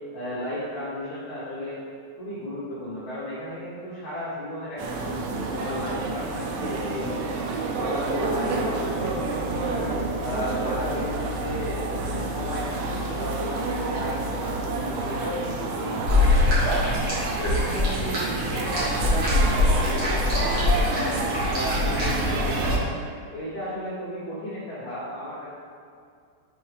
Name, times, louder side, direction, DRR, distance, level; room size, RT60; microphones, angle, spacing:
voice 1, 0.1-1.8 2.2-7.3 7.8-9.9 10.2-12.8 13.1-16.9 17.4-21.1 21.4-22.9 23.3-25.5, equal, 75° left, -11 dB, 1.6 m, -34 dB
sound 1, 4.8-22.8, right 3 dB, 85° right, 3.0 m, -29 dB
sound 2, 16.1-22.8, left 2 dB, 65° right, 1.2 m, -24 dB
6.8 x 5.4 x 3.3 m, 2.3 s
omnidirectional pair, 5.1 m